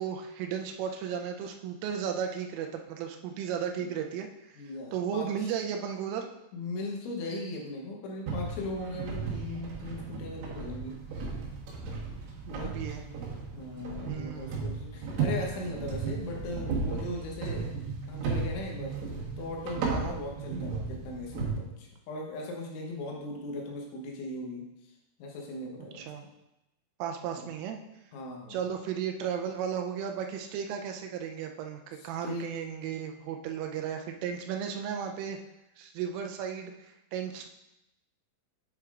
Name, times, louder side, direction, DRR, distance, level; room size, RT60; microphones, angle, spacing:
voice 1, 0.0-4.5 4.9-6.2 12.5-13.0 14.1-14.6 19.9-20.2 25.9-26.2 27.0-27.8 28.5-35.4 35.8-37.5, right 8 dB, 85° right, 4 dB, 3.3 m, -35 dB
voice 2, 4.6-5.5 6.5-11.0 12.5-12.8 13.5-17.7 18.1-19.0 19.4-24.7 25.2-26.1 27.3-27.5 28.1-28.6 32.0-32.5, left 2 dB, 75° left, -1 dB, 3.4 m, -38 dB
sound 1, 8.3-21.5, right 4 dB, 70° right, 3.5 m, -35 dB
9.0 x 7.5 x 2.5 m, 0.89 s
omnidirectional pair, 5.7 m